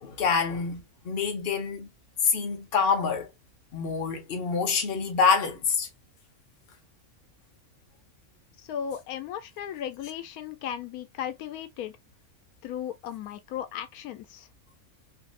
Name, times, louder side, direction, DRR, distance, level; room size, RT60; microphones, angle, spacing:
voice 1, 0.0-1.9 2.2-3.3 3.7-5.9, left 5 dB, 45° left, 1.1 m, -26 dB
voice 2, 8.7-12.0 12.6-14.5, left 9 dB, 90° left, 1.1 m, -36 dB
4.1 x 2.5 x 2.4 m
omnidirectional pair, 1.5 m